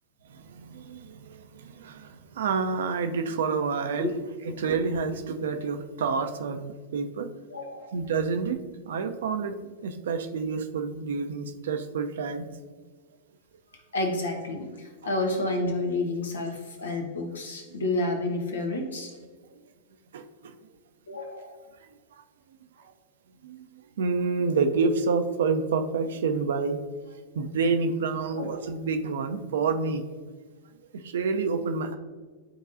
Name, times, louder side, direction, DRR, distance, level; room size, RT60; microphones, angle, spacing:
voice 1, 0.5-1.4 1.7-4.1 4.6-7.3 7.9-8.6 8.9-9.5 9.8-12.5 20.1-20.2 23.4-23.6 24.0-26.8 27.4-30.0 31.0-32.0, right 4 dB, 65° right, 7 dB, 0.6 m, -28 dB
voice 2, 7.5-8.0 13.9-19.1 21.1-21.6 28.3-28.7, left 2 dB, 75° left, 4 dB, 1.2 m, -30 dB
11.5 x 3.9 x 2.7 m, 1.4 s
figure-of-eight pair, 100°, 0 cm